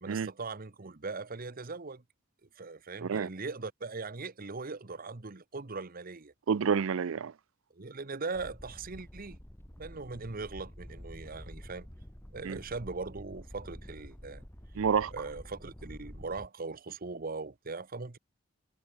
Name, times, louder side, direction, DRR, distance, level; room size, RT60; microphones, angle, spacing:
voice 1, 0.0-2.0 2.5-6.3 7.7-9.4 9.8-11.9 12.3-14.4 15.1-18.2, right 3 dB, 45° right, 1.1 m, -40 dB
voice 2, 6.5-7.3 12.4-12.6 14.8-15.1, right 6 dB, 70° right, 0.4 m, -28 dB
sound 1, 8.3-16.5, equal, 10° left, 1.8 m, -49 dB
head